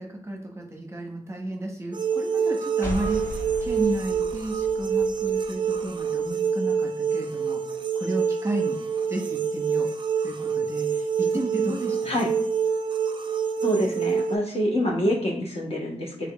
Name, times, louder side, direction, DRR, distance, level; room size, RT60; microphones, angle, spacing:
voice 1, 0.0-7.6 7.9-8.8 9.1-9.9 10.2-12.2, right 1 dB, 20° right, 1 dB, 0.9 m, -32 dB
sound 1, 1.9-14.4, right 6 dB, 40° right, 0.4 m, -26 dB
sound 2, 2.8-6.3, equal, 20° left, 0.7 m, -37 dB
voice 2, 13.6-16.3, equal, 50° left, -1 dB, 1.1 m, -26 dB
3.6 x 3.4 x 2.3 m, 0.66 s
cardioid pair, 65°, 13 cm